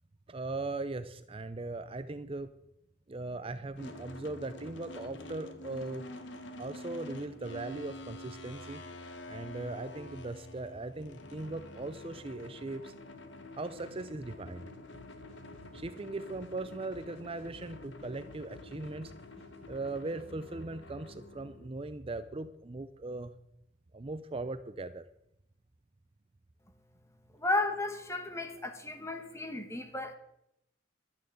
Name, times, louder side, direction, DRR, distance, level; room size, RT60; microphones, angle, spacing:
voice 1, 0.3-2.5 3.1-6.0 6.6-8.8 9.3-12.9 13.6-14.7 15.7-19.1 19.7-23.3 23.9-25.0, right 2 dB, 30° right, 0.6 m, -39 dB
sound 1, 3.8-21.7, left 1 dB, 65° left, 1.5 m, -48 dB
sound 2, 14.9-20.2, left 1 dB, 30° left, 6.4 m, -57 dB
voice 2, 27.4-30.2, left 2 dB, 15° left, 1.5 m, -33 dB
12.0 x 10.5 x 8.0 m
head